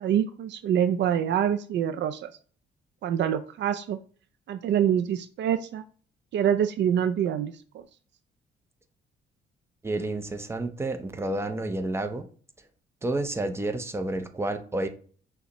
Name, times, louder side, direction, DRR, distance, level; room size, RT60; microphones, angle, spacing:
voice 1, 0.0-2.3 3.0-4.0 4.5-5.8 6.3-7.8, right 9 dB, 65° right, 10 dB, 0.4 m, -25 dB
voice 2, 9.8-12.2 13.0-14.9, right 2 dB, 15° right, 6 dB, 0.6 m, -30 dB
6.2 x 2.2 x 2.9 m, 0.43 s
cardioid pair, 90°, 20 cm